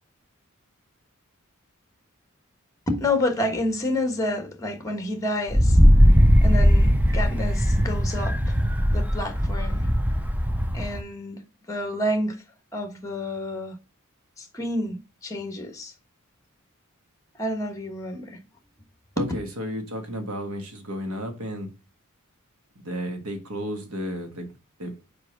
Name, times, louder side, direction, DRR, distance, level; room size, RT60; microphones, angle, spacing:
voice 1, 2.9-5.8 6.4-8.6 8.9-9.9 10.7-11.4 11.7-12.4 12.7-13.8 14.4-15.0 15.2-15.9 17.4-18.4 19.2-19.3, left 1 dB, 15° left, 1.3 m, -29 dB
Wind, 5.5-11.0, equal, 5° right, 0.5 m, -19 dB
voice 2, 19.2-21.7 22.8-24.5 24.8-24.9, equal, 75° right, 1.4 m, -32 dB
5.0 x 4.6 x 6.0 m
head